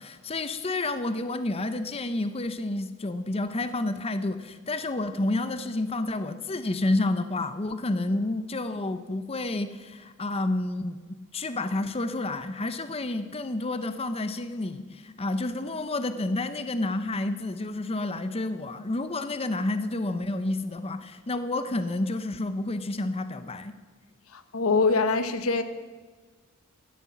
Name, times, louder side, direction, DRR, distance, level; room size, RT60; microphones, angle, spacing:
voice 1, 0.0-23.7, left 2 dB, 30° left, 10 dB, 0.7 m, -30 dB
voice 2, 24.3-25.6, left 4 dB, 85° left, 11 dB, 1.1 m, -24 dB
15.5 x 12.5 x 6.1 m, 1.4 s
head